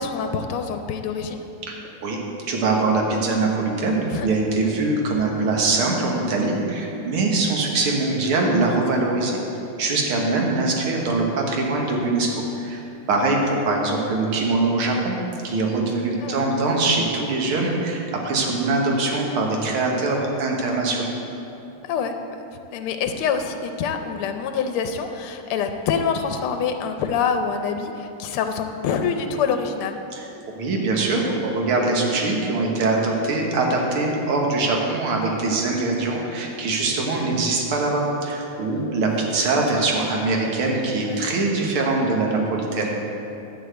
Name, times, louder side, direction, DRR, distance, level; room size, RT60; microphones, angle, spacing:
voice 1, 0.0-1.4 4.1-4.3 4.6-4.7 16.2-16.4 21.8-22.4 22.7-30.0 39.1-39.3 39.8-39.9 41.1-41.2, left 6 dB, 85° left, 6 dB, 1.6 m, -26 dB
voice 2, 2.5-9.4 9.8-12.3 12.6-12.8 13.1-15.1 15.4-21.1 30.1-30.2 30.6-43.0, right 3 dB, 80° right, 0 dB, 2.2 m, -22 dB
11.0 x 4.8 x 7.9 m, 2.9 s
omnidirectional pair, 2.4 m